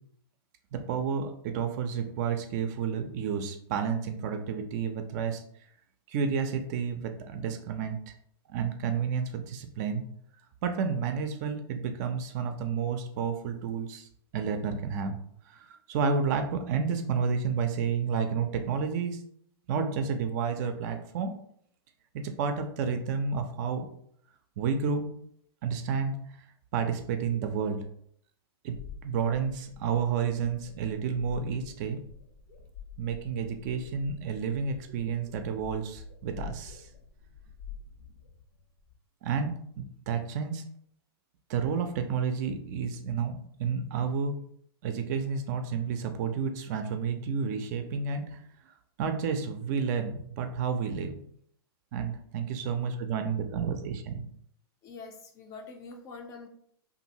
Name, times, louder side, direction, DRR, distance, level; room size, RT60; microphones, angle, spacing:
voice 1, 0.7-5.4 6.1-8.0 8.5-10.0 10.6-14.1 14.3-15.2 15.5-19.2 19.7-21.4 22.1-23.9 24.6-25.1 25.6-26.2 26.7-27.8 28.6-28.8 29.0-32.0 33.0-36.9 39.2-39.5 39.8-40.6 41.5-44.4 44.8-48.4 49.0-51.2 51.9-54.2, right 6 dB, 45° right, 7 dB, 0.4 m, -30 dB
sound 1, 28.7-38.9, left 6 dB, 75° left, 0.9 m, -47 dB
voice 2, 54.8-56.5, left 4 dB, 25° left, 4 dB, 0.4 m, -45 dB
2.9 x 2.5 x 2.7 m, 0.66 s
hypercardioid pair, 125°, 13 cm